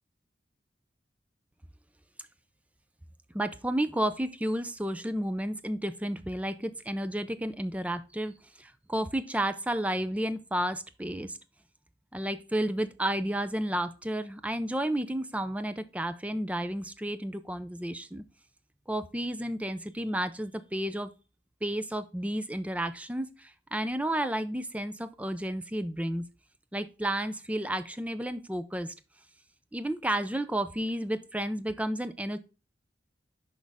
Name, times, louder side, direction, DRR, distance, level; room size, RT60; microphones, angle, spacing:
voice 1, 3.3-11.4 12.1-18.2 18.9-21.1 21.6-26.2 26.7-28.9 29.7-32.4, right 1 dB, 10° right, 12 dB, 0.4 m, -32 dB
6.2 x 5.2 x 3.5 m, 0.31 s
head